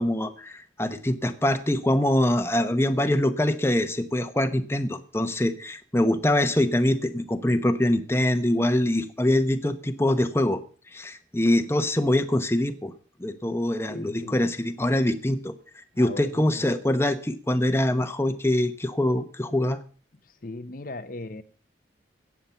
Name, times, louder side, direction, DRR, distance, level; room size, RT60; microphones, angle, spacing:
voice 1, 0.0-10.6 10.9-12.9 13.2-19.8, left 1 dB, 15° left, 8 dB, 1.0 m, -24 dB
voice 2, 13.9-14.4 15.9-16.6 20.2-21.4, left 2 dB, 45° left, 10 dB, 0.8 m, -38 dB
17.5 x 7.4 x 7.0 m, 0.42 s
head